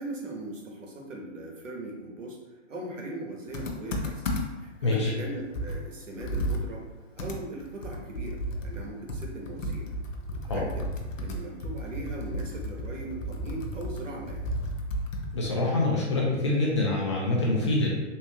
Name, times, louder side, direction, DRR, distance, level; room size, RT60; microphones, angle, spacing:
voice 1, 0.0-2.4 2.7-4.2 4.6-6.9 7.2-9.9 10.3-10.9 11.2-14.5, right 2 dB, 80° right, -1 dB, 1.0 m, -39 dB
Computer keyboard, 3.5-4.7 5.1-5.2 5.5-8.8 9.1-15.6, equal, 90° left, 0.7 m, -33 dB
voice 2, 4.8-5.1 10.5-10.6 15.3-17.9, left 2 dB, 25° left, -3 dB, 0.3 m, -25 dB
3.4 x 2.6 x 2.8 m, 1.2 s
hypercardioid pair, 130°, 38 cm